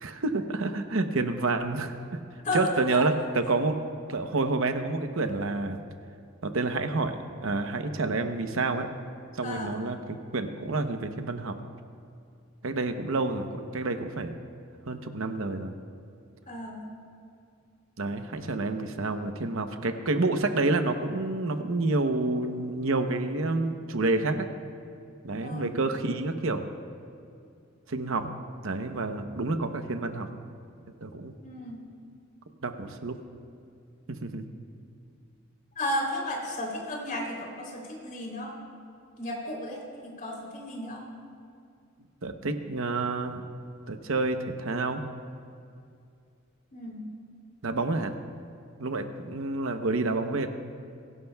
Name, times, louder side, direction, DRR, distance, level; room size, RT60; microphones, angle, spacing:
voice 1, 0.0-2.2 2.5-3.8 4.1-5.8 6.4-8.9 9.3-11.6 12.6-14.3 14.9-15.7 18.0-24.5 25.2-26.6 27.9-28.3 28.6-30.3 31.0-31.3 32.6-33.2 34.1-34.4 42.2-43.3 43.9-45.0 47.6-48.1 48.8-50.5, right 3 dB, 70° right, 7 dB, 0.9 m, -29 dB
voice 2, 2.4-3.0 9.4-9.7 16.5-16.9 25.4-25.8 31.4-31.8 35.8-38.5 39.2-41.0 46.7-47.1, left 1 dB, 45° left, -2 dB, 3.4 m, -34 dB
21.5 x 17.0 x 2.3 m, 2.4 s
head